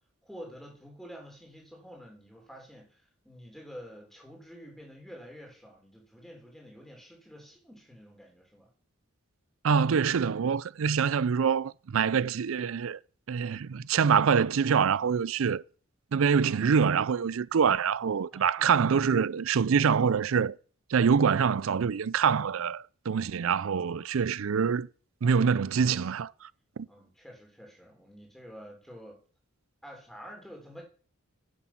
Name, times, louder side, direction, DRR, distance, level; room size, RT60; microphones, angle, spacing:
voice 1, 0.2-8.7 16.4-16.8 18.3-18.9 23.4-24.3 26.9-29.2 29.8-30.8, equal, ahead, 3.4 m, -49 dB
voice 2, 9.6-13.0 13.3-15.6 16.1-20.6 20.9-24.9 25.2-26.5 26.8-26.9, right 6 dB, 70° right, 0.4 m, -25 dB
10.5 x 7.8 x 5.8 m
head